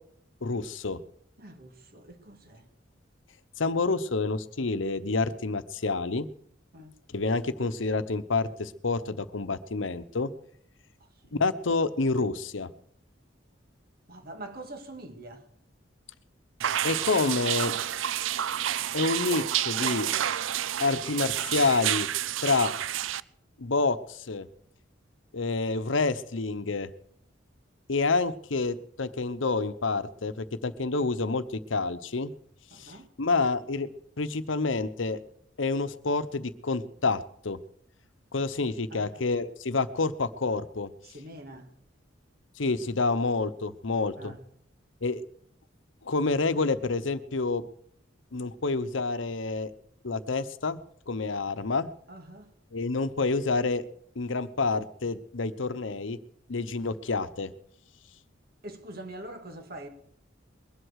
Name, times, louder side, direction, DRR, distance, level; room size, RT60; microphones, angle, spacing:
voice 1, 0.4-1.0 3.6-6.3 7.1-10.3 11.3-12.7 16.8-17.7 18.9-20.1 20.8-22.1 22.4-22.7 23.6-24.5 25.3-26.9 27.9-31.4 31.7-32.3 32.7-33.9 34.2-35.2 35.6-37.6 38.3-40.9 42.6-44.3 45.0-45.2 46.0-47.6 48.3-49.7 50.0-50.8 51.1-51.9 52.7-53.8 54.2-56.2 56.5-57.5, left 3 dB, 80° left, 0.9 m, -28 dB
voice 2, 1.4-2.7 6.7-6.9 11.0-11.4 14.1-15.5 32.7-33.1 38.9-39.2 41.0-41.7 44.2-44.4 52.1-52.5 58.6-59.9, right 1 dB, 55° right, 2.1 m, -44 dB
sound 1, 16.6-23.2, right 11 dB, 85° right, 0.5 m, -29 dB
22.0 x 8.0 x 6.4 m
head